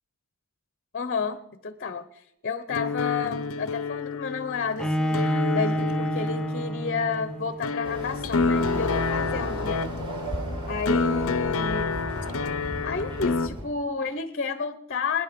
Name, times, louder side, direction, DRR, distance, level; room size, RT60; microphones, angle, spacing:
voice 1, 0.9-9.8 10.7-12.0 12.8-15.2, left 5 dB, 45° left, 12 dB, 1.0 m, -31 dB
sound 1, 2.7-13.5, left 4 dB, 65° left, 0.8 m, -29 dB
Bowed string instrument, 4.8-7.8, equal, 5° left, 0.7 m, -28 dB
Chatter / Car passing by / Motorcycle, 7.8-13.7, equal, 20° right, 4.4 m, -35 dB
24.5 x 10.5 x 5.3 m, 0.80 s
head